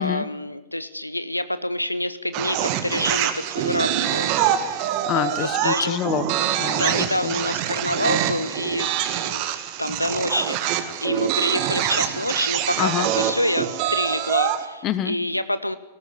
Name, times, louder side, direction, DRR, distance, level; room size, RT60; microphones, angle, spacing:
voice 1, 0.0-4.7 5.1-6.0 6.8-9.5 9.8-15.8, left 1 dB, 90° left, 14 dB, 0.8 m, -27 dB
sound 1, 2.3-14.7, right 11 dB, 40° right, 1.8 m, -25 dB
voice 2, 4.7-7.4 12.8-13.1 14.8-15.2, left 11 dB, 35° left, 15 dB, 1.3 m, -27 dB
19.0 x 14.5 x 9.6 m, 1.0 s
figure-of-eight pair, 100°, 0 cm